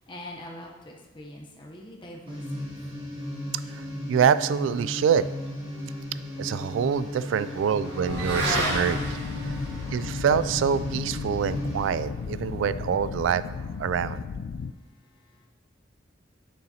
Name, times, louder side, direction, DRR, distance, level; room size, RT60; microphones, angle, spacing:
voice 1, 0.1-2.7 15.0-15.5, left 1 dB, 25° left, -1 dB, 0.8 m, -44 dB
sound 1, 2.3-11.9, left 1 dB, 30° right, 1.8 m, -35 dB
voice 2, 3.7-5.3 6.4-9.2 9.9-13.4 13.8-14.2, right 7 dB, 80° right, 16 dB, 0.3 m, -25 dB
Motorcycle / Accelerating revving vroom, 5.4-14.2, right 1 dB, 60° right, 1.9 m, -36 dB
sound 2, 8.1-14.7, left 5 dB, 85° left, 0.3 m, -35 dB
9.4 x 6.9 x 2.8 m, 1.2 s
head